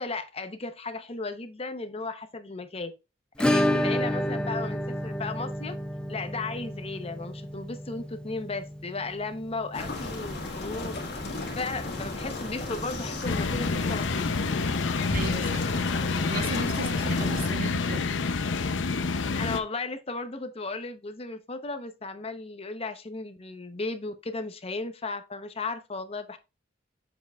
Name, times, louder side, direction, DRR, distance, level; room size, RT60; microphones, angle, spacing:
voice 1, 0.0-2.9 3.4-5.7 6.1-11.0 11.5-14.3 19.4-26.4, left 3 dB, 30° left, 0.8 m, -35 dB
Acoustic guitar / Strum, 3.4-12.0 12.3-12.4 12.6-12.7 13.1-13.2 15.3-15.4 16.5-16.6, equal, 5° left, 0.4 m, -31 dB
sound 1, 9.7-17.5, left 2 dB, 65° left, 1.8 m, -35 dB
sound 2, 13.2-19.6, left 4 dB, 85° left, 0.6 m, -28 dB
voice 2, 15.1-15.8 16.1-18.1, right 4 dB, 50° right, 0.7 m, -36 dB
7.0 x 5.9 x 2.3 m
head